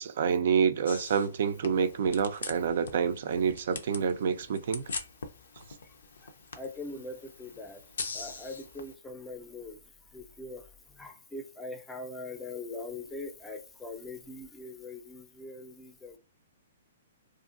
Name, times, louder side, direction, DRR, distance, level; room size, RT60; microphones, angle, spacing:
voice 1, 0.0-4.9, right 7 dB, 60° right, 0.4 m, -28 dB
sound 1, 0.9-8.9, left 4 dB, 75° left, 0.4 m, -42 dB
voice 2, 6.2-7.8 8.1-9.8 10.1-10.6 11.0-16.2, left 2 dB, 10° left, 0.5 m, -42 dB
2.5 x 2.5 x 2.4 m
hypercardioid pair, 125°, 0 cm